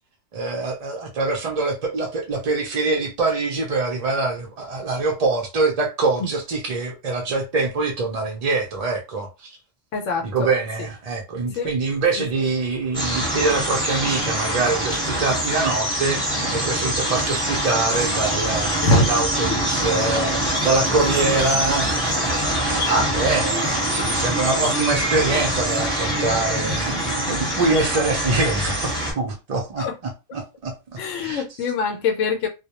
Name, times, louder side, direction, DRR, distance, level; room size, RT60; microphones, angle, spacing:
voice 1, 0.3-9.5 10.3-20.3 20.6-22.1 22.8-31.4, right 3 dB, 65° right, 0.3 m, -24 dB
voice 2, 9.9-10.5 11.5-11.7 12.2-12.3 18.8-19.1 19.5-19.6 21.0-21.2 26.3-26.4 26.9-27.1 29.8-29.9 31.0-32.5, left 3 dB, 75° left, 0.9 m, -23 dB
sound 1, 12.9-29.1, right 1 dB, 10° right, 1.0 m, -24 dB
2.2 x 2.1 x 2.8 m
omnidirectional pair, 1.3 m